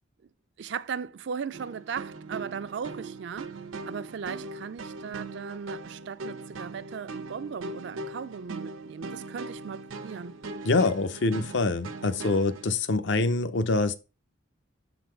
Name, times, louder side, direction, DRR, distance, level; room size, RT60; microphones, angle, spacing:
voice 1, 0.6-3.6 3.9-10.4, right 6 dB, 60° right, 0.4 m, -37 dB
sound 1, 1.5-12.7, right 3 dB, 85° right, 0.8 m, -40 dB
voice 2, 10.6-13.9, left 3 dB, 60° left, 0.6 m, -25 dB
6.7 x 3.9 x 4.5 m
head